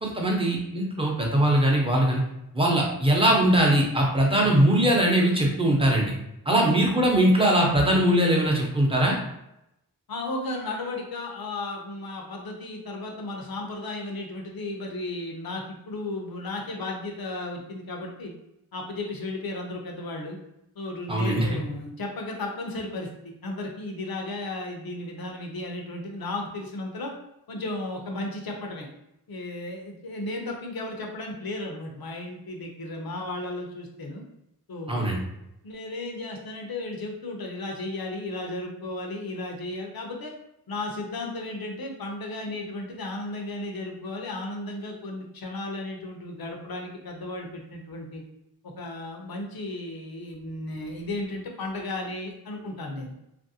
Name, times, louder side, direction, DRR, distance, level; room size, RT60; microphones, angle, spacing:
voice 1, 0.0-2.2 2.5-6.2 6.5-9.2 21.1-21.5 34.9-35.2, right 1 dB, 15° right, -2 dB, 0.8 m, -21 dB
voice 2, 6.5-6.8 10.1-18.3 18.7-20.4 20.8-23.1 23.4-27.1 27.5-28.9 29.3-34.2 34.7-35.0 35.6-40.3 40.7-48.2 48.6-53.1, left 2 dB, 65° left, 1 dB, 0.7 m, -34 dB
3.1 x 2.6 x 2.7 m, 0.84 s
wide cardioid pair, 75°, 38 cm